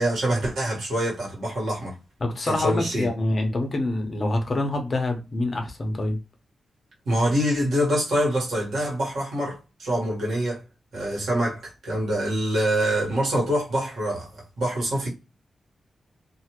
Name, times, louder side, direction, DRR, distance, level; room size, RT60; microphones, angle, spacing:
voice 1, 0.0-1.9 2.5-3.1 7.0-10.6 10.9-15.1, equal, 85° right, 1.4 m, -25 dB
voice 2, 2.2-6.2, left 2 dB, 35° left, 0.7 m, -26 dB
2.5 x 2.4 x 2.9 m
wide cardioid pair, 170°, 0 cm